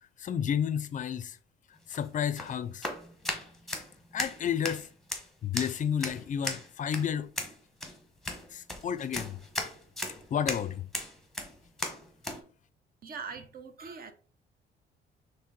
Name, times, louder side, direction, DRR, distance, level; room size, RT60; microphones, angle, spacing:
voice 1, 0.2-1.4 1.9-2.9 4.1-4.9 5.4-7.3 8.5-9.4 10.3-10.8, left 8 dB, 40° left, 0.4 m, -31 dB
sound 1, 1.8-12.4, left 1 dB, ahead, 1.0 m, -38 dB
voice 2, 13.0-14.1, right 5 dB, 50° right, 0.7 m, -42 dB
4.3 x 3.2 x 3.8 m
cardioid pair, 115°, 20 cm